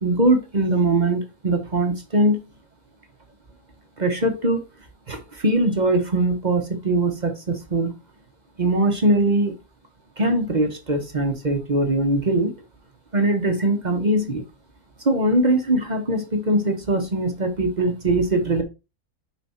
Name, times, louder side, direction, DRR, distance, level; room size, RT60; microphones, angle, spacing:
voice 1, 0.0-2.4 4.0-4.6 5.1-7.9 8.6-9.5 10.2-12.5 13.1-14.4 15.0-18.6, right 1 dB, 35° right, 0.9 m, -21 dB
5.8 x 4.5 x 4.1 m
omnidirectional pair, 1.6 m